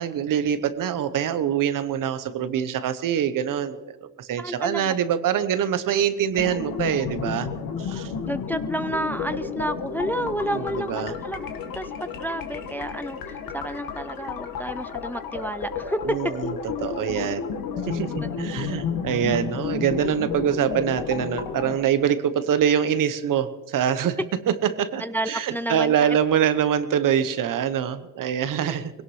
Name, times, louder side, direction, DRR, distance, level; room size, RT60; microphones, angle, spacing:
voice 1, 0.0-7.5 7.8-8.1 10.2-11.1 16.1-16.5 16.8-17.4 17.8-24.2 24.8-28.9, right 9 dB, 60° right, 13 dB, 1.0 m, -24 dB
voice 2, 4.4-4.9 8.3-11.5 11.7-16.0 18.2-18.3 25.0-26.2 28.6-28.7, right 1 dB, 5° left, 12 dB, 0.4 m, -31 dB
sound 1, 6.3-21.8, left 6 dB, 70° left, 1.6 m, -31 dB
20.5 x 17.5 x 3.2 m, 1.3 s
cardioid pair, 80°, 36 cm